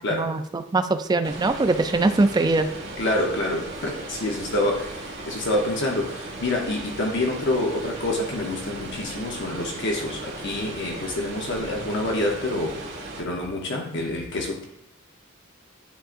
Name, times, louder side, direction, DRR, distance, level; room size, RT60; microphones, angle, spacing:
voice 1, 0.1-2.7, right 2 dB, 20° right, 8 dB, 0.4 m, -22 dB
sound 1, 1.2-13.2, right 2 dB, 50° right, 1.8 m, -37 dB
voice 2, 3.0-14.7, left 1 dB, 60° left, 0 dB, 0.8 m, -27 dB
10.5 x 3.7 x 2.5 m, 0.80 s
head